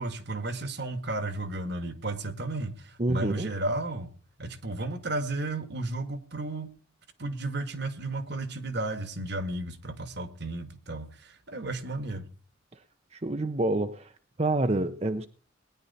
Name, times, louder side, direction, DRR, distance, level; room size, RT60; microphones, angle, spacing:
voice 1, 0.0-4.1 4.4-6.7 7.2-12.3, right 2 dB, 60° right, 1.7 m, -33 dB
voice 2, 3.0-3.5 13.1-14.1 14.4-15.3, right 2 dB, 35° right, 0.7 m, -27 dB
19.5 x 10.5 x 4.2 m
head